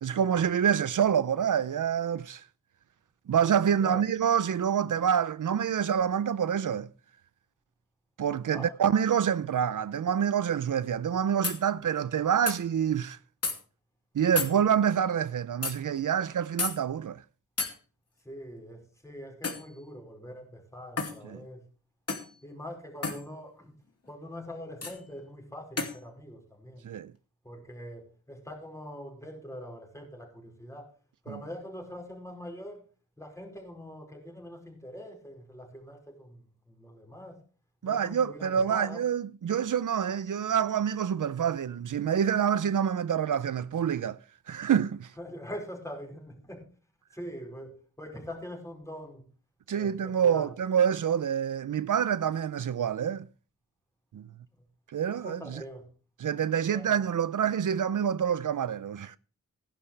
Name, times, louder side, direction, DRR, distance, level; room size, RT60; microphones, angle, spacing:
voice 1, 0.0-2.4 3.3-6.9 8.2-13.2 14.1-17.2 21.2-21.4 26.8-27.1 31.3-31.4 37.8-44.2 44.5-45.1 49.7-53.3 54.1-54.3 54.9-55.6 56.2-59.2, right 8 dB, 75° right, 0.6 m, -27 dB
voice 2, 8.5-8.8 18.2-21.6 22.4-23.7 24.0-26.8 27.4-30.9 31.2-32.9 33.2-36.4 36.7-37.4 37.8-39.1 45.2-46.7 47.1-49.3 49.7-50.5 55.1-55.9 56.7-57.0, equal, 10° left, 5.0 m, -43 dB
sound 1, 11.4-11.6 12.5-12.6 13.4-13.6 14.4-14.5 15.6-15.8 16.6-16.8 17.6-17.7 19.4-19.7 21.0-21.2 22.1-22.3 23.0-23.2 24.8-25.0 25.8-26.0, left 4 dB, 50° left, 2.6 m, -31 dB
15.5 x 11.5 x 3.3 m
wide cardioid pair, 90°, 32 cm